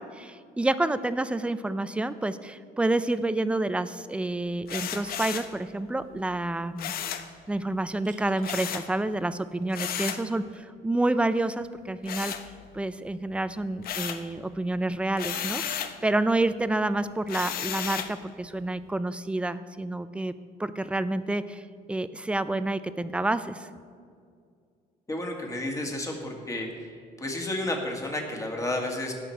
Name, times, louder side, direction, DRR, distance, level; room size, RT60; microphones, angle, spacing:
voice 1, 0.0-7.0 7.5-12.3 12.7-20.3 20.6-21.6 21.9-23.7, right 2 dB, 5° right, 13 dB, 0.4 m, -29 dB
sound 1, 4.7-5.6 6.8-7.3 8.4-8.9 9.7-10.3 12.0-12.9 13.3-14.3 15.2-16.0 17.3-18.2, left 9 dB, 65° left, 0.8 m, -33 dB
sound 2, 7.8-8.6 10.4-10.7, right 6 dB, 50° right, 1.6 m, -50 dB
voice 2, 25.1-26.9 27.2-29.1, left 1 dB, 20° left, 1 dB, 2.0 m, -31 dB
17.0 x 6.0 x 4.6 m, 2.2 s
cardioid pair, 110°, 17 cm